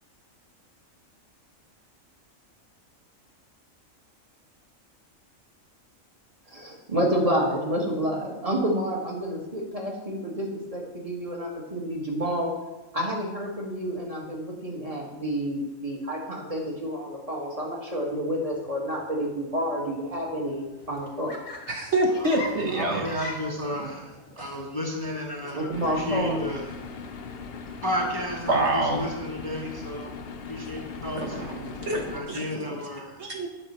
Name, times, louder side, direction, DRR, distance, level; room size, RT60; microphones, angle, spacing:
voice 1, 6.5-12.5 12.9-21.3 25.6-26.4, equal, 25° right, -2 dB, 1.8 m, -29 dB
Laughter, 20.7-28.2, left 2 dB, 85° left, 1.7 m, -43 dB
voice 2, 21.7-23.3 24.4-24.5 28.5-29.0 31.2-32.8 33.2-33.5, right 1 dB, 60° right, 1 dB, 1.2 m, -27 dB
voice 3, 22.7-26.8 27.8-30.2 30.5-31.8 32.1-33.3, equal, 20° left, -1 dB, 1.1 m, -33 dB
sound 1, 25.7-32.2, left 5 dB, 55° left, 0.8 m, -39 dB
8.9 x 6.5 x 4.4 m, 1.1 s
omnidirectional pair, 1.4 m